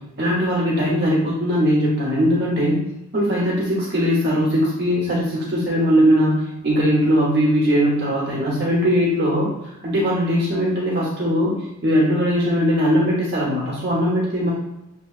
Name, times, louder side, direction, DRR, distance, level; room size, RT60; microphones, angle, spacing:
voice 1, 0.2-2.8 3.1-9.5 9.8-14.5, equal, 55° right, -5 dB, 0.9 m, -20 dB
6.7 x 2.7 x 2.4 m, 0.91 s
head